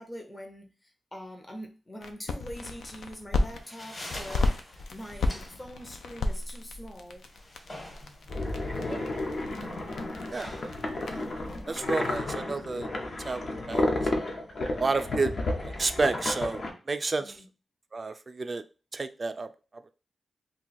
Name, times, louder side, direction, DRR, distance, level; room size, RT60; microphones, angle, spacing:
voice 1, 0.0-7.3 17.2-17.5, equal, 25° left, 0.6 m, -44 dB
sound 1, 2.0-3.6 4.1-12.2, left 2 dB, 85° left, 0.4 m, -34 dB
sound 2, 3.6-12.3, left 1 dB, 40° left, 1.3 m, -46 dB
sound 3, 8.3-16.7, left 2 dB, 60° left, 0.7 m, -32 dB
voice 2, 11.7-12.9 13.2-13.9 14.8-15.3 15.6-17.3 17.9-18.6 18.9-19.5, right 3 dB, 45° right, 0.3 m, -30 dB
2.5 x 2.3 x 4.0 m
cardioid pair, 60°, 0 cm